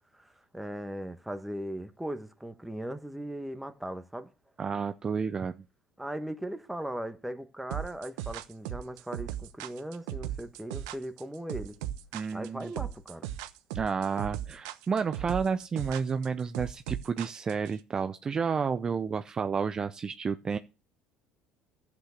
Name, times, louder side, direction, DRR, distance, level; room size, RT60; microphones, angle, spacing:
voice 1, 0.1-4.3 6.0-11.8 12.3-13.3, right 1 dB, 5° right, 1.5 m, -38 dB
voice 2, 4.6-5.6 12.1-12.7 13.7-20.6, right 5 dB, 30° right, 0.6 m, -31 dB
sound 1, 7.7-17.7, right 12 dB, 85° right, 1.0 m, -37 dB
11.5 x 8.4 x 6.5 m
supercardioid pair, 85°, 2 cm